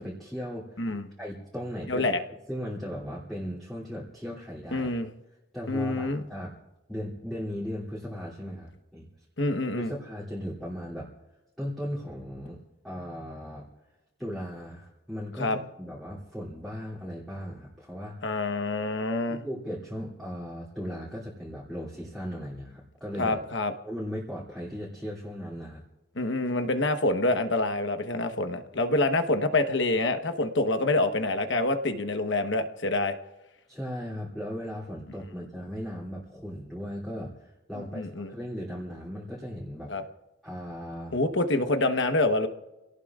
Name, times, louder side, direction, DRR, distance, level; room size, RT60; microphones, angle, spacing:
voice 1, 0.0-0.9 1.2-2.2 2.5-4.9 5.5-6.5 6.9-9.1 9.7-11.1 11.6-13.7 14.2-15.5 15.8-18.4 19.3-23.4 23.8-25.8 33.7-39.9 40.4-41.1, equal, ahead, -8 dB, 2.9 m, -37 dB
voice 2, 0.8-1.1 1.9-2.2 4.7-5.1 5.7-6.2 9.4-9.9 15.4-15.6 18.2-19.4 23.2-23.7 26.1-33.2 37.8-38.3 39.9-40.0 41.1-42.5, left 2 dB, 60° left, 7 dB, 1.1 m, -26 dB
29.0 x 18.0 x 2.5 m, 1.0 s
head